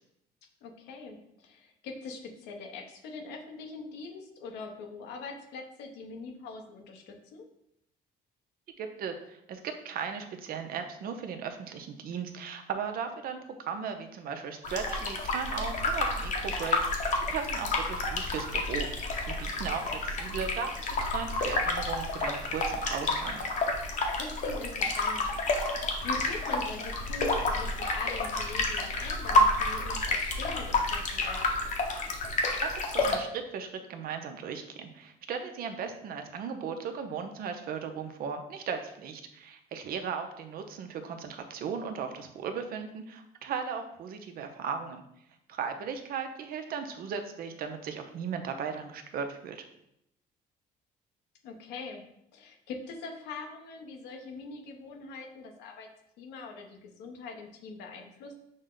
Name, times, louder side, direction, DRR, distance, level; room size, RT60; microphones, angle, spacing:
voice 1, 0.6-7.4 24.2-25.3 25.7-31.6 51.4-52.0 52.3-55.9 56.2-58.3, left 4 dB, 85° left, 3 dB, 0.8 m, -43 dB
voice 2, 8.8-23.4 32.6-45.0 45.5-49.7, right 6 dB, 60° right, 6 dB, 0.6 m, -37 dB
sound 1, 14.6-33.2, left 2 dB, 50° left, 0.8 m, -30 dB
6.3 x 2.1 x 3.7 m, 0.77 s
cardioid pair, 110°, 17 cm